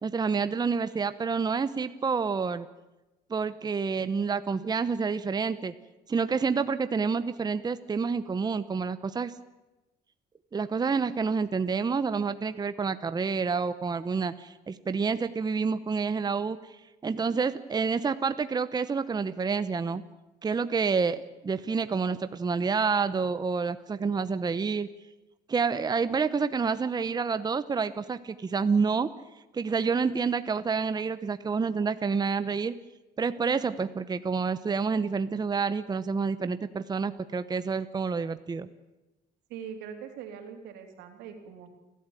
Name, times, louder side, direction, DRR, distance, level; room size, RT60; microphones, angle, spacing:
voice 1, 0.0-2.7 3.3-5.7 6.1-9.3 10.5-16.6 17.0-20.0 20.4-24.9 25.5-29.1 29.5-32.7 33.2-38.7, right 5 dB, 25° right, 12 dB, 0.9 m, -28 dB
voice 2, 39.5-41.7, right 7 dB, 90° right, 4 dB, 3.8 m, -42 dB
29.5 x 13.0 x 9.1 m, 1.1 s
cardioid pair, 110°, 17 cm